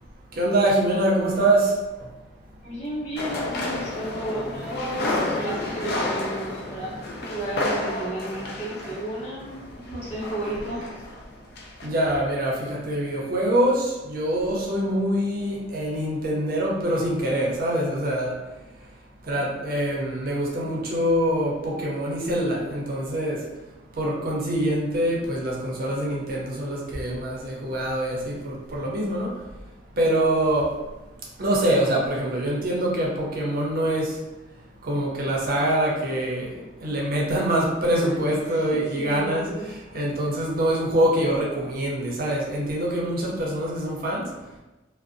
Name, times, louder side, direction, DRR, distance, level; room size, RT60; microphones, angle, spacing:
voice 1, 0.4-1.7 11.8-18.3 19.3-23.4 24.0-29.3 30.0-30.7 31.4-34.1 34.8-36.5 36.8-39.4 39.9-44.2, right 1 dB, 55° right, -3 dB, 0.5 m, -24 dB
voice 2, 2.6-11.0 38.0-40.0, right 1 dB, 40° left, -8 dB, 1.0 m, -33 dB
sound 1, 3.2-11.3 11.6-11.9, left 2 dB, 60° left, 0.4 m, -31 dB
2.5 x 2.0 x 2.5 m, 1.1 s
head